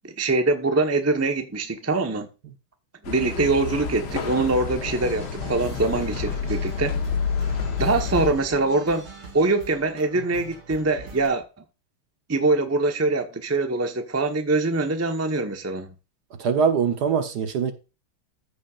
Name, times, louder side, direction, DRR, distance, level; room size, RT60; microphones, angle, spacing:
voice 1, 0.0-2.3 3.0-6.9 7.8-9.1 9.3-11.4 12.3-15.9, right 3 dB, 15° right, 0.5 m, -23 dB
sound 1, 3.0-8.3, left 6 dB, 55° left, 1.5 m, -29 dB
sound 2, 4.1-11.3, right 3 dB, 90° right, 4.0 m, -42 dB
voice 2, 16.4-17.7, right 6 dB, 55° right, 1.4 m, -22 dB
14.0 x 5.9 x 2.5 m
omnidirectional pair, 2.3 m